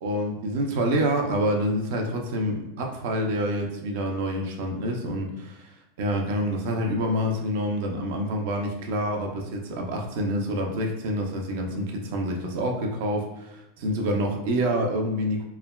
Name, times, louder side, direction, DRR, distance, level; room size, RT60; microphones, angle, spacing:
voice 1, 0.0-15.4, equal, 65° right, 1 dB, 0.5 m, -27 dB
3.3 x 2.2 x 2.2 m, 0.91 s
supercardioid pair, 130°, 0 cm